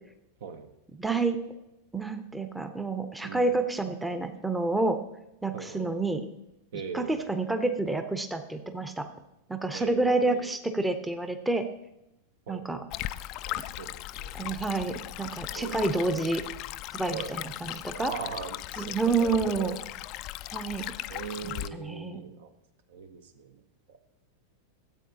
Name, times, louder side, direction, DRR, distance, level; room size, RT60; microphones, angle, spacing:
voice 1, 1.0-1.4 1.9-5.0 5.4-6.2 6.9-9.1 9.5-11.7 12.5-12.8 14.3-16.4 16.9-18.1 18.8-19.7 20.5-21.0 21.4-22.3, right 3 dB, 5° right, 8 dB, 0.7 m, -29 dB
voice 2, 3.2-3.6 5.5-6.0 6.7-7.2 9.7-10.5 12.5-12.9 13.5-14.3 15.5-16.3 17.1-17.3 18.0-19.8 21.1-22.5 22.9-23.6 23.9-24.0, right 6 dB, 55° right, 9 dB, 0.9 m, -40 dB
Stream, 12.9-21.7, left 16 dB, 40° left, 0.3 m, -38 dB
13.5 x 8.4 x 2.8 m, 0.86 s
figure-of-eight pair, 90°, 0 cm